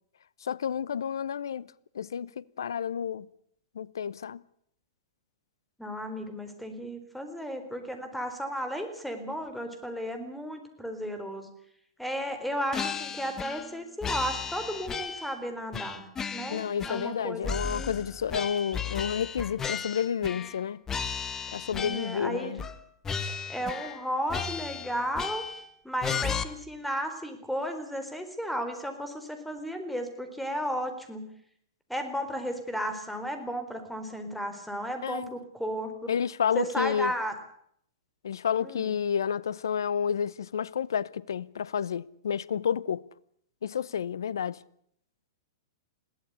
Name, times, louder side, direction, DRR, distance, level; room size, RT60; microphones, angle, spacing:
voice 1, 0.4-1.7 1.9-3.3 3.7-4.4 16.5-20.8 21.5-22.6 35.0-35.3 36.1-37.1 38.2-43.0 43.6-44.6, left 8 dB, 70° left, 0.8 m, -30 dB
voice 2, 5.8-11.5 12.0-16.0 16.3-17.9 21.8-22.6 23.2-25.4 25.8-31.3 31.9-36.1 36.5-37.3 38.6-38.9, equal, ahead, 4.2 m, -34 dB
sound 1, 12.7-13.7 14.0-15.4 15.7-17.2 17.4-20.6 20.9-22.2 22.6-22.8 23.0-24.0 24.3-25.7 26.0-26.4, left 6 dB, 20° left, 1.6 m, -34 dB
21.5 x 17.5 x 8.2 m
figure-of-eight pair, 105°, 2 cm